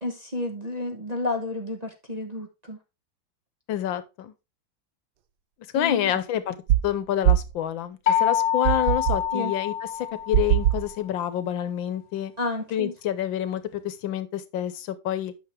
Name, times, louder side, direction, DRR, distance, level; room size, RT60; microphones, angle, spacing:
voice 1, 0.0-2.8 5.7-6.1 9.3-9.5 12.4-12.9, left 2 dB, 25° right, 1.0 m, -31 dB
voice 2, 3.7-4.3 5.7-6.5 6.8-9.7 10.3-12.3 12.7-15.3, left 11 dB, 85° left, 1.6 m, -28 dB
sound 1, 6.7-6.9 7.3-7.5 8.7-9.3 10.3-10.9, right 12 dB, 65° right, 1.1 m, -21 dB
sound 2, 8.1-10.8, left 9 dB, 65° left, 1.6 m, -26 dB
9.0 x 6.0 x 3.4 m
omnidirectional pair, 2.1 m